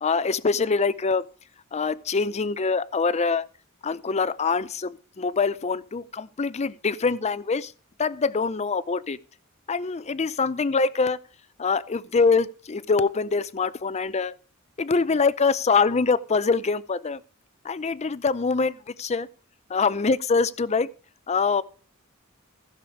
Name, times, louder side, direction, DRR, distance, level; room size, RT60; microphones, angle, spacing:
voice 1, 0.0-1.2 1.7-3.4 3.8-7.7 8.0-9.2 9.7-11.2 11.6-14.3 14.8-17.2 17.6-19.3 19.7-20.9 21.3-21.6, left 4 dB, 30° left, 0.5 m, -24 dB
15.5 x 6.7 x 4.9 m
head